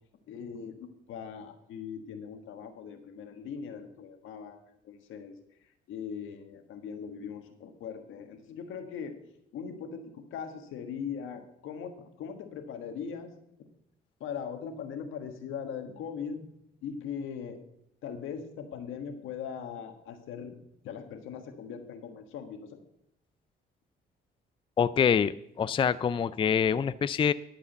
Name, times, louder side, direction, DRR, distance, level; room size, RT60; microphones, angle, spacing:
voice 1, 0.3-5.3 5.6-9.2 9.5-13.3 14.2-16.5 16.8-17.6 18.0-20.5 20.8-22.8, left 7 dB, 85° left, 6 dB, 1.5 m, -40 dB
voice 2, 24.8-27.3, left 7 dB, 25° left, 16 dB, 0.3 m, -25 dB
12.0 x 4.9 x 7.9 m, 0.77 s
cardioid pair, 90°, 20 cm